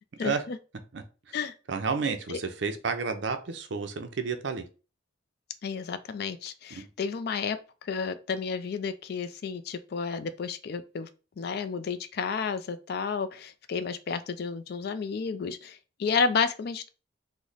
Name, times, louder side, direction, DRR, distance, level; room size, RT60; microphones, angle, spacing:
voice 1, 0.2-0.6 1.3-1.5 2.3-2.4 5.6-11.1 11.4-16.9, left 5 dB, 50° left, 0.3 m, -31 dB
voice 2, 1.7-4.6 6.7-6.8, right 5 dB, 60° right, 0.5 m, -31 dB
3.1 x 2.1 x 3.8 m
head